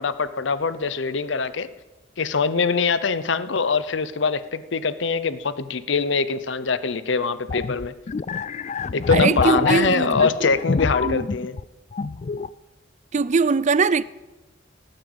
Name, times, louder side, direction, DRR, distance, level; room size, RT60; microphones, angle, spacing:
voice 1, 0.0-1.7 2.2-7.9 8.9-11.6, left 5 dB, 65° left, 0.8 m, -23 dB
sound 1, 7.5-11.6 11.9-12.5, left 4 dB, 40° left, 0.4 m, -26 dB
voice 2, 9.1-10.3 11.0-11.3 13.1-14.0, right 4 dB, 40° right, 0.4 m, -21 dB
18.0 x 8.9 x 8.0 m
head